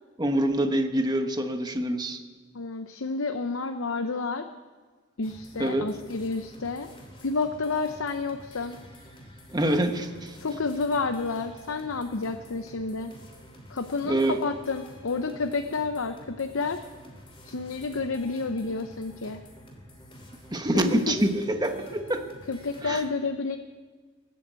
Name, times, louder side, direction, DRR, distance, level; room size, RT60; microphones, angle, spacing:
voice 1, 0.2-2.2 5.6-5.9 9.5-10.4 14.0-14.4 20.5-22.2 22.8-23.0, right 1 dB, 20° right, 6 dB, 1.2 m, -26 dB
voice 2, 2.5-4.5 5.2-6.9 7.2-8.8 10.4-13.1 13.7-16.8 17.5-19.4 20.7-21.2 22.5-23.6, left 4 dB, 75° left, 7 dB, 0.7 m, -30 dB
sound 1, 5.2-23.0, equal, 25° left, 2.9 m, -49 dB
20.0 x 8.5 x 8.2 m, 1.4 s
head